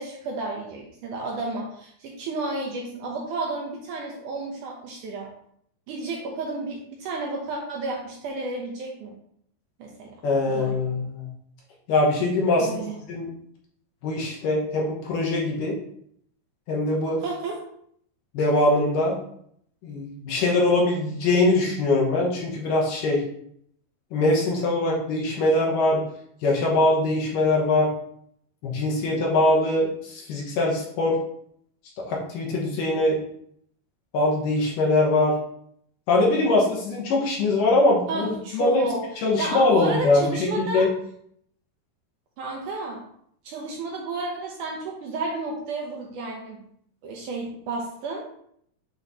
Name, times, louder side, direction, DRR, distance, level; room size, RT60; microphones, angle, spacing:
voice 1, 0.0-5.3 5.9-9.2 9.8-10.1 10.5-10.8 12.6-13.0 17.2-17.6 38.1-40.9 42.4-43.0 43.4-46.6 47.0-48.3, right 2 dB, 75° right, -1 dB, 2.0 m, -31 dB
voice 2, 10.2-11.3 11.9-12.7 13.1-13.3 14.0-15.7 16.7-17.2 18.3-19.2 19.8-23.3 24.1-26.0 26.4-27.9 28.6-31.2 32.1-33.2 34.1-35.4 36.1-38.8 39.2-40.9, left 2 dB, 70° left, -3 dB, 2.4 m, -22 dB
8.3 x 3.1 x 4.0 m, 0.68 s
omnidirectional pair, 4.5 m